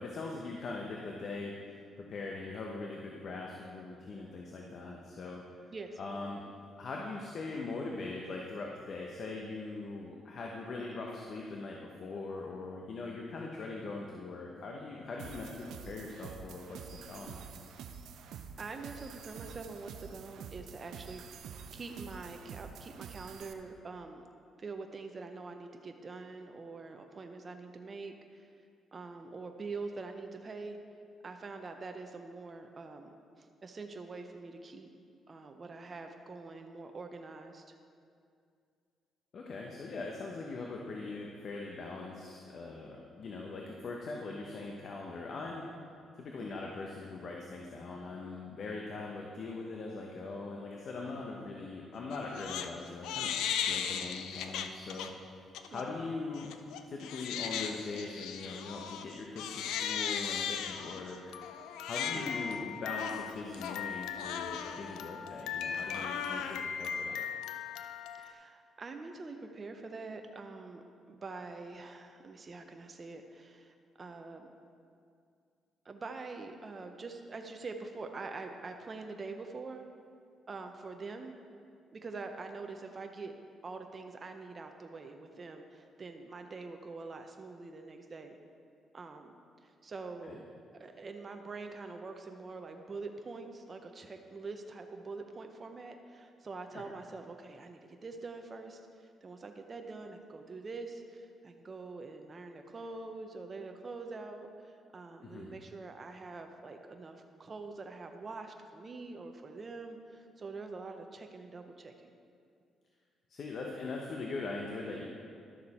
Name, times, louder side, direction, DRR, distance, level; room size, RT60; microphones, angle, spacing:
voice 1, 0.0-5.4 6.0-6.4 6.8-16.8 17.1-17.5 39.3-45.7 46.2-53.3 53.6-55.1 55.7-56.5 56.9-61.4 61.9-67.2 90.3-90.4 96.7-96.8 105.2-105.5 113.3-115.1, left 3 dB, 55° left, -1 dB, 1.0 m, -41 dB
voice 2, 5.7-6.0 10.7-11.0 18.6-21.2 21.7-24.3 24.6-28.5 28.9-30.8 31.2-34.9 35.3-37.8 46.4-46.6 55.7-56.0 62.1-62.3 68.2-74.5 75.8-79.8 80.5-81.3 81.9-83.3 83.6-88.4 88.9-89.3 89.6-90.4 90.7-112.2, right 3 dB, 35° right, 5 dB, 0.7 m, -45 dB
sound 1, 15.2-23.5, right 7 dB, 80° right, 0.6 m, -48 dB
Crying sobbing, 52.1-52.7 53.0-55.1 55.5-55.8 56.3-68.3, left 8 dB, 90° left, 0.5 m, -37 dB
12.0 x 6.6 x 4.3 m, 2.3 s
cardioid pair, 90°, 0 cm